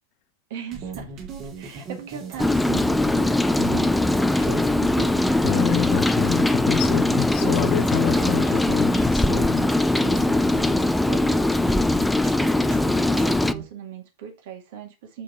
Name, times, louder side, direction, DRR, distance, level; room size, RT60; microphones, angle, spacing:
voice 1, 0.5-1.1 1.6-3.0 3.6-5.2 5.5-5.8 7.1-8.6 9.3-12.1 12.4-15.2, right 8 dB, 55° right, 2.1 m, -38 dB
sound 1, 0.7-13.6, right 4 dB, 35° right, 2.3 m, -37 dB
Rain, 2.4-13.5, left 2 dB, 5° left, 0.5 m, -21 dB
voice 2, 5.4-9.6, left 12 dB, 40° left, 0.8 m, -27 dB
6.9 x 5.4 x 4.0 m
figure-of-eight pair, 90°, 0 cm